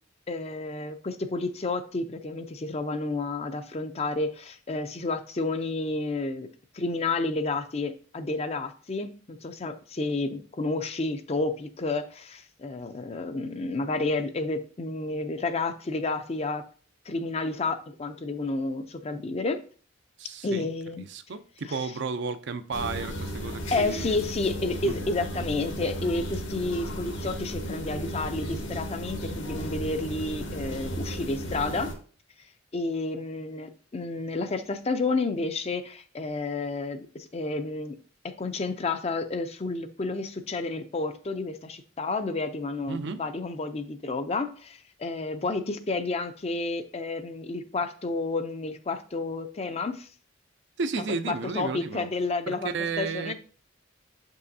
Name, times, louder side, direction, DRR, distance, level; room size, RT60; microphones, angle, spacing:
voice 1, 0.3-6.5 6.7-16.6 17.1-19.6 20.4-21.0 23.7-31.9 32.7-38.0 38.4-50.1 51.0-52.7 53.0-53.3, left 3 dB, 30° left, 0.5 m, -30 dB
voice 2, 20.2-20.7 21.0-24.2 24.8-25.0 42.9-43.2 50.8-52.1 52.5-53.3, right 4 dB, 60° right, 0.5 m, -33 dB
sound 1, 22.7-31.9, equal, 70° left, 1.3 m, -35 dB
6.5 x 5.4 x 2.7 m
head